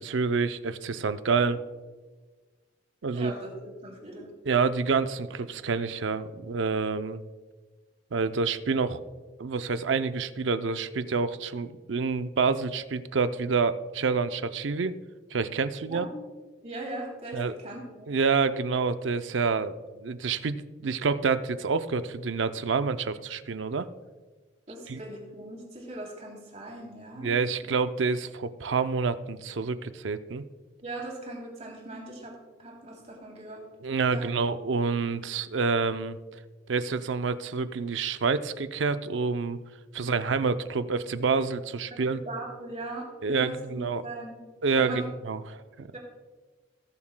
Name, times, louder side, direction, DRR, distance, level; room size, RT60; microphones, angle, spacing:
voice 1, 0.0-1.6 3.0-3.3 4.5-7.2 8.1-9.0 9.4-14.9 15.3-16.1 17.3-17.5 18.1-23.9 24.9-25.0 27.2-30.4 33.8-36.2 36.7-39.6 39.9-42.2 43.2-44.0 44.6-45.9, right 4 dB, 90° right, 11 dB, 0.5 m, -28 dB
voice 2, 3.1-4.3 15.9-16.1 16.6-18.1 24.7-27.3 27.6-27.7 30.8-33.6 34.1-34.3 41.9-44.4 44.7-45.1 45.9-46.0, right 2 dB, 40° right, -1 dB, 3.0 m, -39 dB
18.5 x 7.2 x 2.2 m, 1.3 s
head